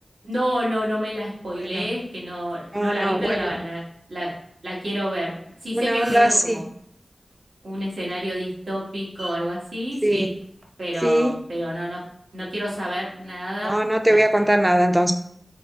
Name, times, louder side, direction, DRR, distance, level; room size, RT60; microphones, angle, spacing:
voice 1, 0.2-3.8 4.1-4.3 4.6-6.6 7.6-10.3 10.8-12.1 12.3-13.8 14.1-14.4, equal, 85° right, -6 dB, 1.4 m, -29 dB
voice 2, 2.7-3.6 5.7-6.6 10.0-10.3 11.0-11.3 13.6-15.1, right 1 dB, 15° right, 6 dB, 0.4 m, -20 dB
sound 1, 5.5-5.6 5.8-6.5 8.1-8.3 9.2-9.4 10.4-10.6, right 1 dB, 35° right, 0.8 m, -36 dB
3.7 x 2.5 x 3.5 m, 0.69 s
wide cardioid pair, 75°, 0 cm